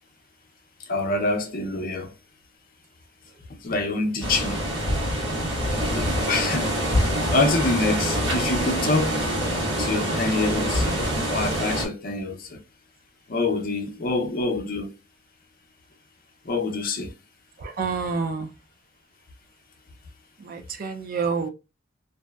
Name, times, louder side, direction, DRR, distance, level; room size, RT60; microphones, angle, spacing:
voice 1, 0.8-2.1 3.5-4.6 5.7-7.0 7.3-9.3 9.8-12.6 13.3-14.9 16.4-17.1, left 2 dB, 50° left, 0.6 m, -26 dB
sound 1, 4.2-11.9, equal, 70° right, 1.3 m, -25 dB
voice 2, 17.6-18.5 20.4-21.5, right 5 dB, 45° right, 0.4 m, -28 dB
2.6 x 2.1 x 2.2 m
head